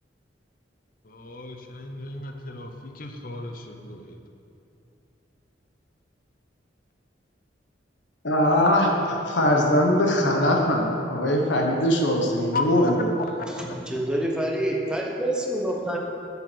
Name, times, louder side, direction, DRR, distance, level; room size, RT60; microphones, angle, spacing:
voice 1, 1.0-4.2 12.5-13.3, left 2 dB, 50° left, 4 dB, 0.9 m, -34 dB
voice 2, 8.2-12.9, left 1 dB, 85° left, 1 dB, 1.2 m, -21 dB
voice 3, 13.5-16.0, right 1 dB, 5° right, -1 dB, 1.1 m, -27 dB
8.4 x 7.2 x 6.2 m, 2.6 s
head